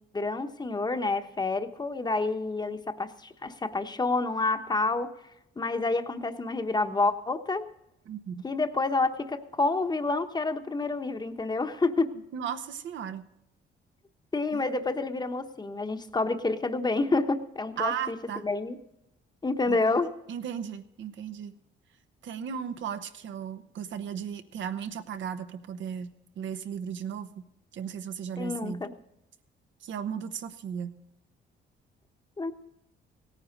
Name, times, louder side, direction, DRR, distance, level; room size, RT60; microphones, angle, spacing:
voice 1, 0.1-5.1 5.6-7.6 8.4-12.1 14.3-18.2 18.4-18.8 19.4-20.1 28.4-28.9 32.4-32.5, left 3 dB, 20° left, 8 dB, 1.0 m, -28 dB
voice 2, 8.1-8.5 12.3-13.2 14.5-14.6 17.8-18.4 19.6-20.0 20.3-21.5 22.2-27.4 27.7-28.9 29.8-31.0, right 8 dB, 70° right, 9 dB, 1.1 m, -36 dB
17.0 x 9.6 x 5.2 m, 0.87 s
cardioid pair, 90°, 20 cm